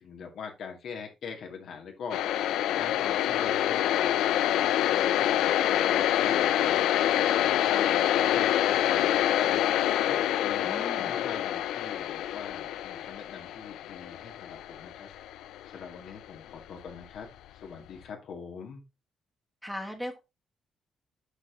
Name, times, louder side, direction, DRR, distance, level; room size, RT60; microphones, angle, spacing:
voice 1, 0.0-2.2 2.7-4.1 4.5-6.8 7.4-15.1 15.7-18.8, left 6 dB, 70° left, 2 dB, 2.4 m, -43 dB
sound 1, 2.1-15.9, left 12 dB, 85° left, 0.4 m, -26 dB
voice 2, 10.6-11.1 19.6-20.2, equal, ahead, 4 dB, 1.7 m, -38 dB
8.0 x 5.2 x 3.9 m, 0.25 s
cardioid pair, 90°, 0 cm